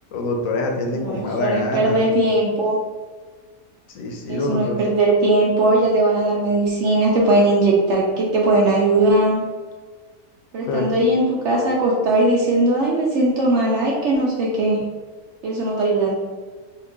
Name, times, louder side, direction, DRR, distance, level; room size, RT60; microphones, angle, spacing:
voice 1, 0.1-2.1 3.9-4.8 10.7-10.9, left 2 dB, 70° left, 1 dB, 1.0 m, -25 dB
voice 2, 0.9-2.8 4.3-9.4 10.5-14.8 15.4-16.1, right 2 dB, 65° right, -2 dB, 0.7 m, -19 dB
2.9 x 2.4 x 3.5 m, 1.4 s
omnidirectional pair, 1.6 m